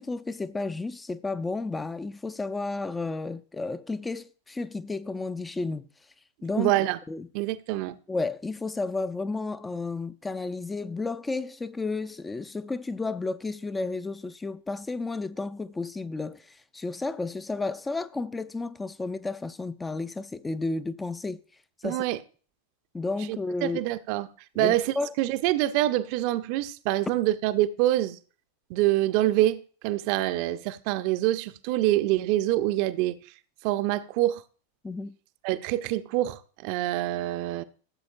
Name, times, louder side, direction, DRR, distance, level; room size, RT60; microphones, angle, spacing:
voice 1, 0.0-5.9 6.4-6.7 7.1-7.3 8.1-21.4 21.8-22.0 22.9-23.8 24.6-25.1 34.8-35.1, left 3 dB, 10° left, 0.4 m, -32 dB
voice 2, 6.6-7.0 7.3-8.0 21.8-22.2 23.3-24.3 24.6-28.2 28.7-33.2 33.6-34.4 35.4-37.6, right 15 dB, 45° right, 0.6 m, -26 dB
14.5 x 7.6 x 2.5 m
figure-of-eight pair, 90°, 0 cm